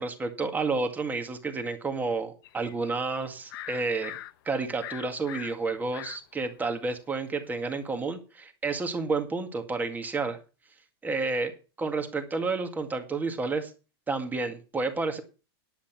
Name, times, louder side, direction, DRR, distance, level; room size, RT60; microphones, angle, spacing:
voice 1, 0.0-4.2 4.5-10.4 11.0-13.7 14.1-15.2, right 3 dB, 15° right, 6 dB, 2.0 m, -30 dB
sound 1, 2.4-4.3 4.8-6.2 6.7-6.8, left 14 dB, 65° left, 0.9 m, -41 dB
10.5 x 8.5 x 5.9 m, 0.33 s
supercardioid pair, 135°, 13 cm